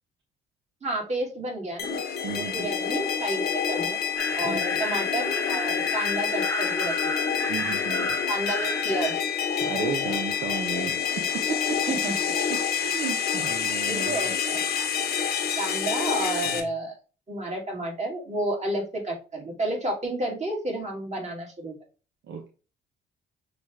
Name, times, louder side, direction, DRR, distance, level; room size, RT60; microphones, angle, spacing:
voice 1, 0.8-2.0 2.4-4.0 4.3-7.2 8.3-9.2 11.9-12.3 13.9-14.9 15.6-16.9 17.3-21.7, right 1 dB, 35° right, -1 dB, 2.1 m, -31 dB
sound 1, 1.8-16.6, left 7 dB, 55° left, 1.0 m, -27 dB
voice 2, 2.2-2.7 4.4-4.6 7.5-8.2 9.6-11.8 12.3-14.2 16.4-16.6 22.3-22.5, right 6 dB, 65° right, 2 dB, 0.8 m, -34 dB
sound 2, 4.2-9.1, left 2 dB, 10° left, 0.8 m, -33 dB
6.0 x 2.4 x 3.2 m, 0.34 s
cardioid pair, 90°, 20 cm